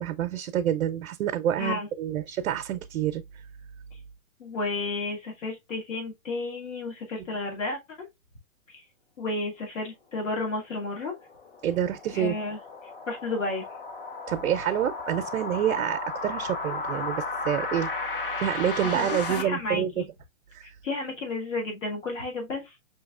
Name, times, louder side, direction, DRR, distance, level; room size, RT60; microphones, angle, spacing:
voice 1, 0.0-3.4 11.6-12.4 14.3-17.9 18.4-20.0 20.5-20.8, right 10 dB, 75° right, 0.5 m, -28 dB
voice 2, 1.6-1.9 4.4-8.1 8.7-8.8 9.2-11.1 12.1-12.6 13.1-13.6 18.8-20.1 20.6-22.7, left 3 dB, 65° left, 1.8 m, -32 dB
sound 1, 10.8-19.4, left 3 dB, 40° left, 0.6 m, -34 dB
5.4 x 2.8 x 2.3 m
hypercardioid pair, 175°, 41 cm